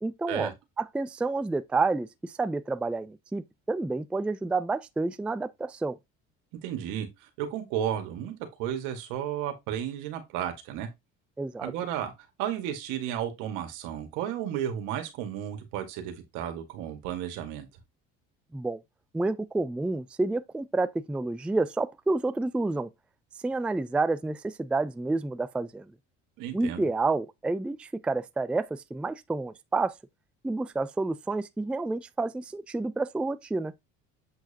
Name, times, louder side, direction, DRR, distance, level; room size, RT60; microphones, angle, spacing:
voice 1, 0.0-6.0 11.4-11.7 18.5-18.8 19.1-22.9 23.4-25.9 26.5-29.9 30.4-33.7, right 3 dB, 5° right, 0.3 m, -29 dB
voice 2, 6.6-7.1 7.4-8.3 8.6-10.9 11.6-12.1 12.4-17.7 26.4-26.9, right 10 dB, 80° right, 1.9 m, -33 dB
7.8 x 4.6 x 2.9 m
supercardioid pair, 95°, 31 cm